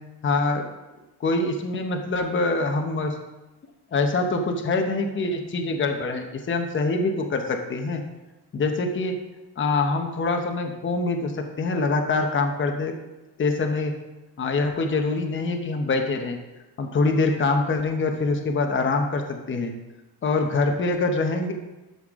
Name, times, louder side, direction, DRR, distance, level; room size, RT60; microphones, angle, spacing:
voice 1, 0.2-0.6 1.2-3.2 3.9-8.0 8.5-9.1 9.6-12.9 13.4-13.9 14.4-16.4 16.8-19.7 20.2-21.5, left 3 dB, 30° left, 4 dB, 0.9 m, -24 dB
12.5 x 5.7 x 3.7 m, 1.1 s
cardioid pair, 150°, 42 cm